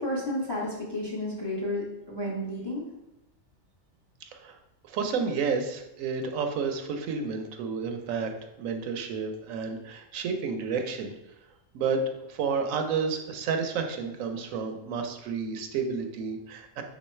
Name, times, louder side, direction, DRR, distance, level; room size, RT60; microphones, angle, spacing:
voice 1, 0.0-2.8, left 1 dB, 25° left, -3 dB, 0.6 m, -32 dB
voice 2, 4.8-8.3 8.6-11.1 11.7-12.0 12.3-16.8, right 5 dB, 80° right, 5 dB, 1.0 m, -31 dB
3.5 x 3.1 x 4.2 m, 0.91 s
omnidirectional pair, 1.4 m